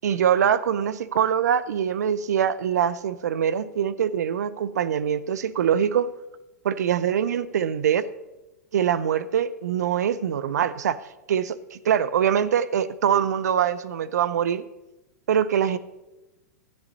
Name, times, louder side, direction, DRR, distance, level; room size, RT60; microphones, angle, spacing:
voice 1, 0.0-6.1 6.6-8.1 8.7-11.0 11.3-14.6 15.3-15.8, right 8 dB, 80° right, 16 dB, 0.6 m, -23 dB
13.0 x 9.6 x 4.1 m, 1.0 s
hypercardioid pair, 120°, 9 cm